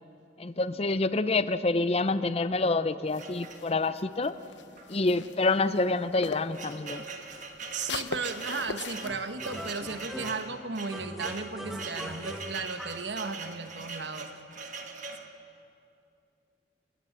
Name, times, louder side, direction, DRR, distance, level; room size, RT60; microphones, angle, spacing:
voice 1, 0.4-4.4 4.9-7.0, left 3 dB, 35° left, 13 dB, 0.6 m, -27 dB
sound 1, 3.1-6.6 6.9-9.7, left 5 dB, 85° left, 0.8 m, -41 dB
sound 2, 3.2-4.0 4.8-4.9 5.2-5.3 6.0-15.3, right 4 dB, 45° right, 1.6 m, -42 dB
voice 2, 7.7-14.3, right 4 dB, 75° right, 9 dB, 1.2 m, -35 dB
sound 3, 9.0-10.5 10.9-13.1, equal, ahead, 1.5 m, -41 dB
29.0 x 16.0 x 7.4 m, 2.6 s
head